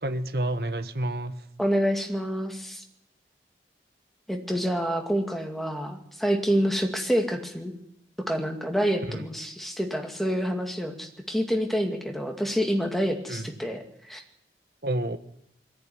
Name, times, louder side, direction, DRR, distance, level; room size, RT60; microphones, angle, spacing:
voice 1, 0.0-1.4 9.1-9.2 13.3-13.5 14.8-15.2, right 1 dB, 60° right, 9 dB, 1.4 m, -29 dB
voice 2, 1.6-2.8 4.3-7.7 8.3-14.2, equal, ahead, 3 dB, 2.4 m, -27 dB
22.0 x 14.5 x 9.7 m, 0.77 s
head